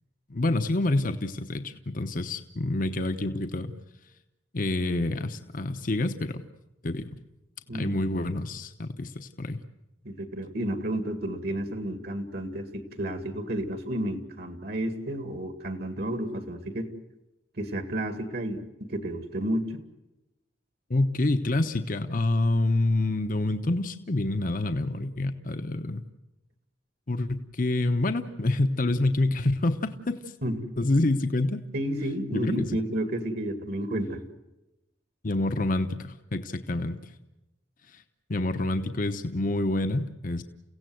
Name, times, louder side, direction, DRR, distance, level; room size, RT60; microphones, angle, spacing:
voice 1, 0.3-3.7 4.5-6.4 6.8-7.1 7.7-9.1 9.4-9.6 20.9-26.0 27.1-30.2 30.8-31.6 32.3-32.8 35.2-37.0 38.3-40.4, left 2 dB, 45° left, 8 dB, 1.0 m, -27 dB
voice 2, 10.0-16.9 17.6-19.8 30.4-30.7 31.7-34.2, right 1 dB, 55° right, 8 dB, 2.2 m, -31 dB
30.0 x 16.5 x 7.8 m, 0.98 s
head